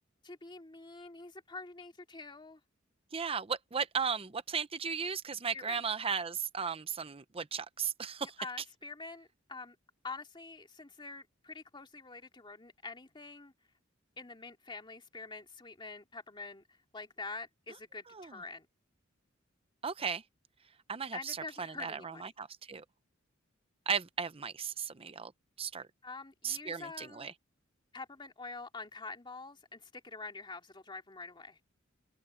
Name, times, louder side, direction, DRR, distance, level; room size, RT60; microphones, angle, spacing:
voice 1, 0.2-2.6 5.5-5.8 8.4-9.8 10.0-13.5 14.2-18.7 21.1-22.2 26.0-27.3 27.9-31.6, left 3 dB, 25° left, 2.5 m, -46 dB
voice 2, 3.1-8.3 18.1-18.3 19.8-20.2 20.9-22.8 23.9-25.3 25.6-25.9 26.4-27.3, right 6 dB, 30° right, 0.7 m, -36 dB
open air
head